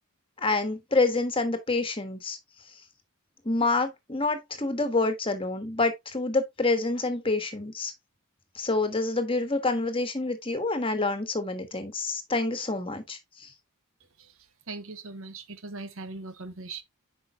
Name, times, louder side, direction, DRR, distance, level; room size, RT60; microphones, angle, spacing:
voice 1, 0.4-2.4 3.4-7.9 8.5-13.5, left 3 dB, 25° left, 1.5 m, -27 dB
voice 2, 14.7-16.8, right 3 dB, 60° right, 1.1 m, -40 dB
8.7 x 5.7 x 2.8 m
head